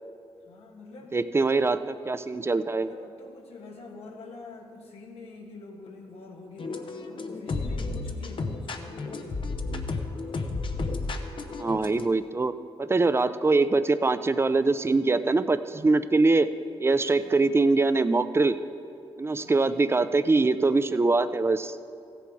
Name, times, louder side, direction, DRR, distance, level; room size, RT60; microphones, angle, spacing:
voice 1, 0.4-1.2 2.8-9.5 17.2-17.6 19.4-19.8, left 3 dB, 80° left, 0 dB, 1.5 m, -46 dB
voice 2, 1.1-2.9 11.6-12.5 12.8-16.5 16.8-18.6 19.2-21.8, right 3 dB, 25° right, 13 dB, 0.5 m, -23 dB
sound 1, 6.6-12.1, left 3 dB, 55° left, 0.8 m, -32 dB
15.5 x 7.0 x 4.7 m, 2.4 s
cardioid pair, 65°, 10 cm